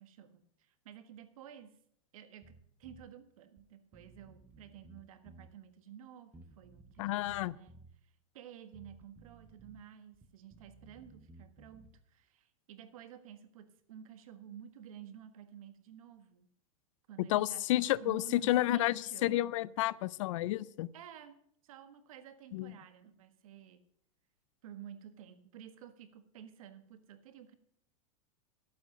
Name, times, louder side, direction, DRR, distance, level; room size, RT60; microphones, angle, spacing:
voice 1, 0.0-1.7 2.1-16.5 17.1-19.5 20.9-21.4 21.6-23.8 24.6-27.6, right 9 dB, 70° right, 10 dB, 1.5 m, -52 dB
Bass guitar, 2.4-3.1 3.6-3.7 3.9-5.5 6.3-7.9 8.7-9.8 10.1-12.0, right 2 dB, 10° right, 0.9 m, -57 dB
voice 2, 7.0-7.6 17.3-20.9 22.5-22.7, left 15 dB, 60° left, 21 dB, 0.5 m, -31 dB
12.0 x 8.5 x 6.2 m, 0.67 s
supercardioid pair, 145°, 18 cm